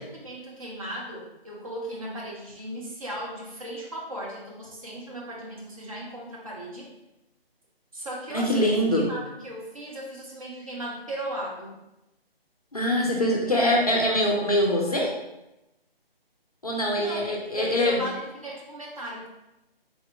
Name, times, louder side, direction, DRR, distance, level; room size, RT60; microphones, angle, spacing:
voice 1, 0.1-6.9 7.9-11.8 16.9-17.3 17.5-19.3, right 1 dB, 35° right, -3 dB, 0.7 m, -37 dB
voice 2, 8.3-9.1 12.7-15.1 16.6-18.0, left 1 dB, 40° left, -1 dB, 0.4 m, -23 dB
3.5 x 2.6 x 2.5 m, 0.92 s
figure-of-eight pair, 155°, 30 cm